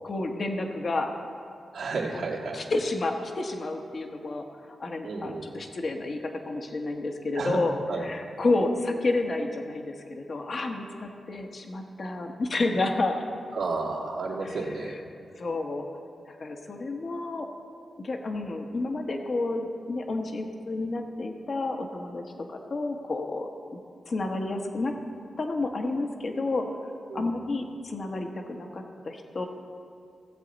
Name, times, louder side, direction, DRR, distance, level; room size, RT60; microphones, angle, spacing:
voice 1, 0.0-1.1 2.1-2.2 2.5-7.8 8.0-13.2 14.4-15.0 15.4-15.9 16.3-17.5 18.0-23.5 24.1-25.0 25.4-29.5, left 2 dB, 50° left, 4 dB, 1.0 m, -30 dB
voice 2, 1.7-2.6 5.0-5.4 7.4-7.6 7.9-8.0 13.5-15.0 27.1-27.3, right 3 dB, 90° right, -5 dB, 1.8 m, -32 dB
17.0 x 7.7 x 4.0 m, 2.3 s
cardioid pair, 90°, 0 cm